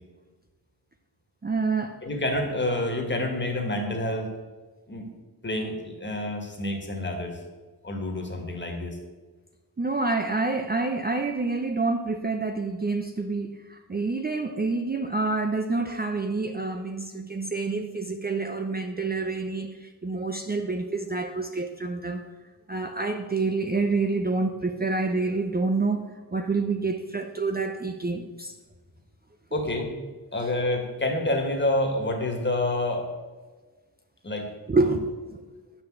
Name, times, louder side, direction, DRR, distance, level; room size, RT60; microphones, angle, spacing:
voice 1, 1.4-2.0 9.8-22.2 22.7-26.0 26.3-28.5 34.7-35.6, right 3 dB, 25° right, 5 dB, 0.6 m, -27 dB
voice 2, 2.0-4.3 4.9-5.1 5.4-7.4 7.8-9.0 29.5-29.9 30.3-33.1 34.2-34.5 34.8-34.9, left 1 dB, 25° left, 2 dB, 1.9 m, -28 dB
9.3 x 6.2 x 7.8 m, 1.3 s
wide cardioid pair, 120°, 40 cm